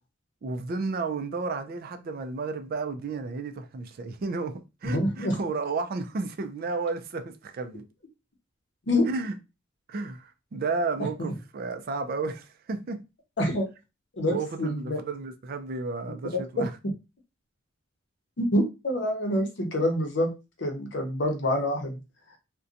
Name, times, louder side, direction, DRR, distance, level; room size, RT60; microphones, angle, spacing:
voice 1, 0.4-7.8 9.1-9.4 9.9-13.0 14.3-16.7, right 4 dB, 50° right, 0.4 m, -32 dB
voice 2, 4.8-5.4 8.9-9.1 11.2-11.3 13.4-13.7 14.2-15.0 18.4-20.3 20.6-22.0, left 1 dB, 60° left, 0.7 m, -26 dB
2.6 x 2.1 x 2.5 m
head